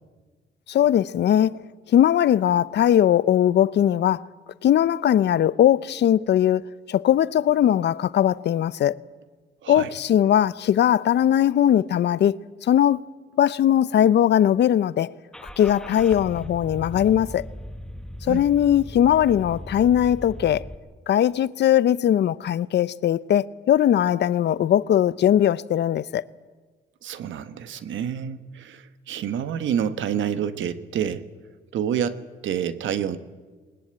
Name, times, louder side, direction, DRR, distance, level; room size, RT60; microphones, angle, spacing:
voice 1, 0.7-1.6 1.9-4.3 4.6-6.6 6.9-8.9 9.7-13.0 13.4-15.1 15.6-17.5 18.2-20.6 21.1-26.2, left 10 dB, 60° left, 0.6 m, -20 dB
Car / Engine starting, 15.3-20.8, left 1 dB, 5° left, 0.9 m, -38 dB
voice 2, 27.0-31.3 31.7-33.2, right 9 dB, 75° right, 1.3 m, -28 dB
20.5 x 20.0 x 8.9 m
cardioid pair, 90°, 20 cm